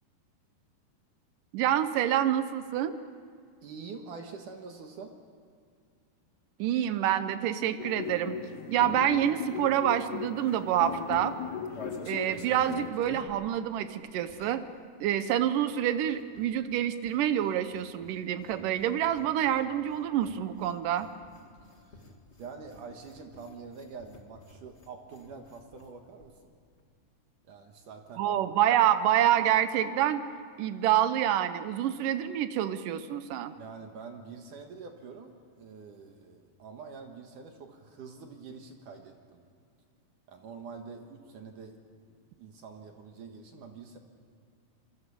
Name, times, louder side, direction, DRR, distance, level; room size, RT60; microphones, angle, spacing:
voice 1, 1.5-2.9 6.6-8.4 8.7-11.3 12.1-14.6 15.0-21.1 28.2-30.2 30.6-33.5, right 11 dB, 80° right, 11 dB, 1.9 m, -27 dB
voice 2, 3.6-5.1 11.1-12.2 21.6-22.1 22.4-26.6 27.4-28.3 33.6-39.4 40.3-41.8 42.4-44.0, right 5 dB, 60° right, 4 dB, 2.5 m, -46 dB
sound 1, 7.8-12.9, left 8 dB, 70° left, 3.1 m, -38 dB
sound 2, 11.1-14.7 15.0-25.9 26.2-26.3 26.5-26.8, left 2 dB, 90° left, 0.6 m, -51 dB
27.0 x 23.0 x 7.0 m, 2.2 s
omnidirectional pair, 4.9 m